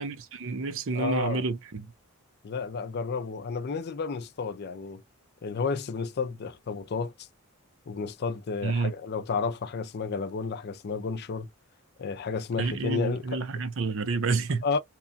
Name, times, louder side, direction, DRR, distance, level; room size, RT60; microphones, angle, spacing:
voice 1, 0.0-1.9 8.6-8.9 12.6-14.7, right 4 dB, 60° right, 0.6 m, -29 dB
voice 2, 0.9-1.4 2.4-5.0 5.4-7.3 7.9-11.5 12.0-13.6 14.6-14.8, left 5 dB, 50° left, 0.4 m, -32 dB
2.9 x 2.2 x 2.5 m
head